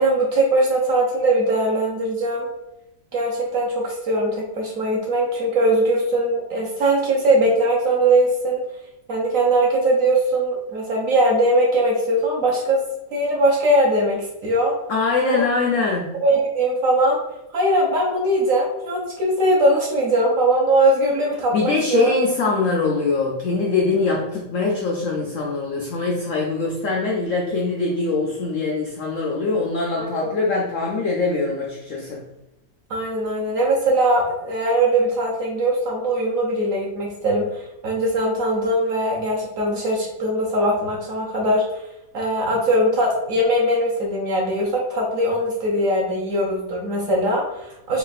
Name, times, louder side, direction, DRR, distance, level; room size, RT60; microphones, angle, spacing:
voice 1, 0.0-2.5 3.1-8.6 9.1-12.8 13.1-14.7 15.3-15.4 16.2-17.2 17.5-22.1 30.0-30.1 32.9-41.6 42.1-48.0, right 1 dB, 60° right, -3 dB, 0.9 m, -20 dB
voice 2, 14.9-16.1 21.5-32.2, left 3 dB, 85° left, -1 dB, 0.6 m, -23 dB
3.4 x 2.4 x 3.9 m, 0.91 s
omnidirectional pair, 2.0 m